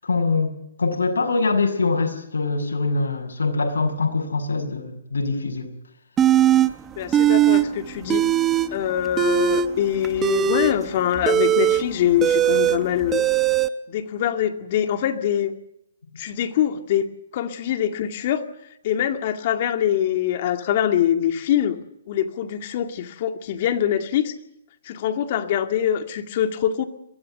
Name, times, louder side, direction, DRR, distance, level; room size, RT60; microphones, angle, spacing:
voice 1, 0.0-5.7, left 3 dB, 85° left, 4 dB, 6.8 m, -23 dB
sound 1, 6.2-6.7 7.1-7.6 7.9-8.7 9.1-13.7, right 10 dB, 15° right, 1.0 m, -19 dB
voice 2, 7.0-8.3 8.7-13.2 13.9-15.5 16.2-17.0 17.3-18.4 18.8-21.8 22.1-24.3 24.8-26.9, left 10 dB, 40° left, 8 dB, 2.2 m, -23 dB
23.0 x 17.5 x 7.9 m, 0.81 s
hypercardioid pair, 155°, 0 cm